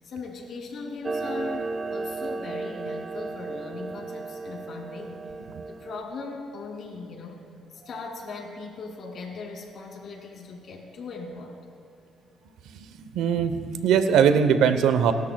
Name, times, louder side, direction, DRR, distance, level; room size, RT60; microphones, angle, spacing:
voice 1, 0.0-5.2 5.7-7.4 7.7-11.6, left 4 dB, 65° left, 1 dB, 2.6 m, -39 dB
Clock, 1.0-6.0, right 3 dB, 30° right, 0.5 m, -34 dB
voice 2, 13.1-15.1, right 7 dB, 90° right, 10 dB, 0.8 m, -20 dB
29.5 x 12.5 x 2.3 m, 2.5 s
cardioid pair, 90°, 0 cm